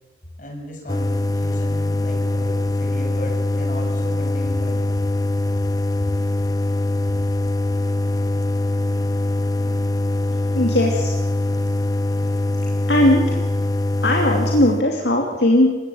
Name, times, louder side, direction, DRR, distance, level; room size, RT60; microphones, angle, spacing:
voice 1, 0.4-5.0, left 1 dB, 45° left, 1 dB, 7.1 m, -36 dB
sound 1, 0.9-14.8, left 1 dB, 20° left, 0.7 m, -22 dB
voice 2, 10.5-11.1 12.9-13.4 14.0-15.7, left 1 dB, 65° left, 0 dB, 2.9 m, -18 dB
28.0 x 17.0 x 8.7 m, 1.2 s
head